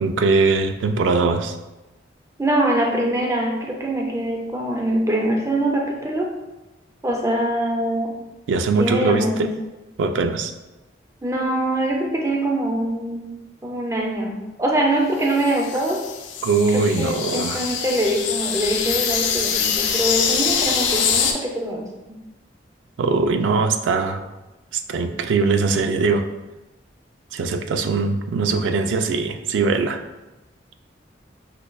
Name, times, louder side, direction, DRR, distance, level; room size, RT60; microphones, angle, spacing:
voice 1, 0.0-1.6 8.5-9.5 10.0-10.5 16.4-17.7 23.0-24.2 24.7-26.3 27.3-30.0, right 4 dB, 90° right, 7 dB, 0.3 m, -21 dB
voice 2, 2.4-6.3 7.0-8.3 8.8-9.6 11.2-13.4 13.6-16.0 16.7-22.2, right 1 dB, 15° right, 0 dB, 0.4 m, -23 dB
sound 1, 15.2-21.3, left 7 dB, 90° left, 0.4 m, -24 dB
5.2 x 2.3 x 2.2 m, 1.1 s
head